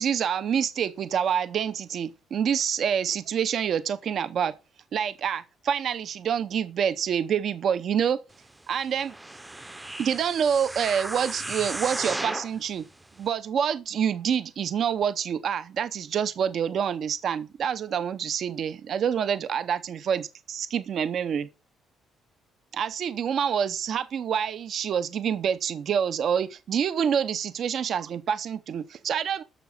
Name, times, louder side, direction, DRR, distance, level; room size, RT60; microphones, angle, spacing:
voice 1, 0.0-4.5 4.9-8.2 8.7-9.1 10.0-12.8 13.2-21.5 22.7-29.4, right 8 dB, 45° right, 0.7 m, -27 dB
sound 1, 9.0-12.6 13.2-13.3, right 2 dB, 10° right, 0.7 m, -35 dB
12.0 x 7.2 x 5.8 m
cardioid pair, 175°, 0 cm